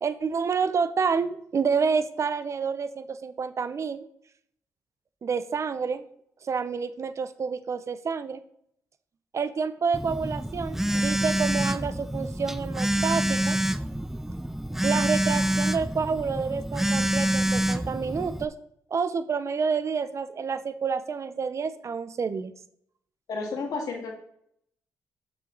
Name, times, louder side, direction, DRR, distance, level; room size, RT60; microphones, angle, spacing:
voice 1, 0.0-4.0 5.2-6.0 6.4-8.4 9.3-13.6 14.8-18.5 18.9-22.5, right 5 dB, 50° right, 13 dB, 0.7 m, -28 dB
Telephone, 9.9-18.5, right 1 dB, 5° right, 0.5 m, -27 dB
voice 2, 23.3-24.1, left 4 dB, 70° left, 2 dB, 1.9 m, -31 dB
12.5 x 5.8 x 4.0 m, 0.69 s
cardioid pair, 80°, 7 cm